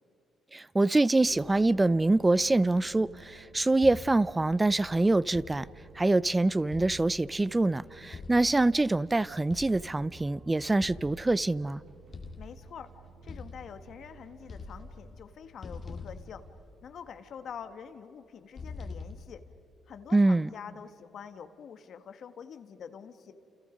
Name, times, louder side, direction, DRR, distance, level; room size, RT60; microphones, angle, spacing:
voice 1, 0.5-5.7 6.0-11.8 20.1-20.5, right 2 dB, 15° right, 0.5 m, -25 dB
sound 1, 1.2-15.2, right 5 dB, 60° right, 4.6 m, -54 dB
sound 2, 3.8-4.4 5.3-5.9 6.7-7.5 8.1-8.9 9.5-10.1 10.8-11.6 12.1-12.8 13.3-14.1 14.4-15.3 15.6-17.1 18.6-19.5, left 4 dB, 45° left, 2.0 m, -44 dB
voice 2, 12.4-12.9 13.2-16.4 16.8-19.4 19.9-23.3, left 7 dB, 65° left, 1.7 m, -46 dB
29.5 x 29.0 x 5.3 m
cardioid pair, 90°, 0 cm